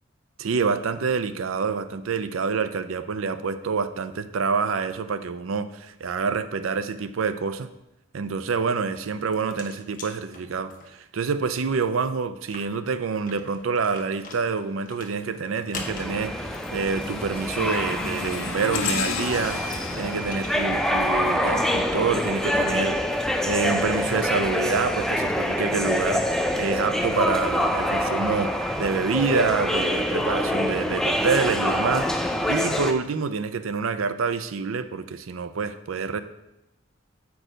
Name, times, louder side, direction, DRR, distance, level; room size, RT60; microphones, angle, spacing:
voice 1, 0.4-7.7 8.1-19.6 20.0-23.0 23.4-36.2, right 5 dB, 90° right, 11 dB, 0.5 m, -27 dB
sound 1, 8.9-11.2 11.5-11.6 11.9-12.0 12.4-17.2 19.0-19.1 19.6-20.6, left 4 dB, 45° left, 1.0 m, -43 dB
sound 2, 14.2-14.6 15.0-21.9 23.1-25.3 25.9-26.1 27.0-27.1, left 5 dB, 80° left, 0.7 m, -36 dB
sound 3, 15.7-32.9, left 1 dB, ahead, 0.4 m, -26 dB
7.7 x 4.7 x 4.9 m, 0.91 s
head